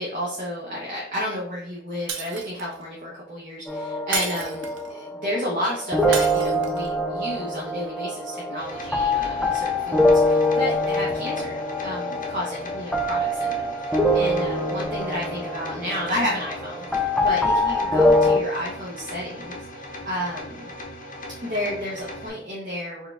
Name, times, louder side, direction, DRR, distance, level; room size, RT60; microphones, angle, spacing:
voice 1, 0.0-20.7 21.4-23.1, left 1 dB, 45° right, -4 dB, 0.8 m, -31 dB
Shatter, 2.1-2.8 4.1-4.9 6.1-6.9, right 5 dB, 80° right, 0.6 m, -32 dB
sound 1, 3.7-18.4, left 1 dB, 5° left, 0.3 m, -24 dB
sound 2, 8.6-22.3, left 1 dB, 45° left, 0.8 m, -39 dB
4.5 x 2.3 x 3.3 m, 0.71 s
head